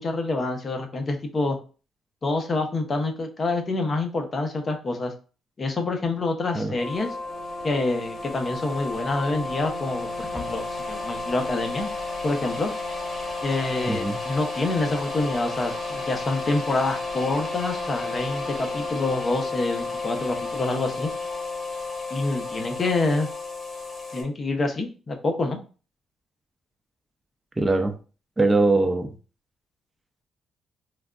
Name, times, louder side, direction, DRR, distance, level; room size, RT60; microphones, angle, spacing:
voice 1, 0.0-1.6 2.2-5.1 5.6-7.2 7.6-11.9 12.2-12.7 13.4-21.1 22.1-23.3 24.1-25.6, left 2 dB, 35° left, 0.7 m, -27 dB
sound 1, 6.8-24.2, left 3 dB, 10° left, 1.5 m, -32 dB
voice 2, 13.9-14.2 27.6-28.0 28.4-29.1, right 2 dB, 20° right, 0.4 m, -21 dB
3.2 x 2.3 x 2.3 m
cardioid pair, 90°, 0 cm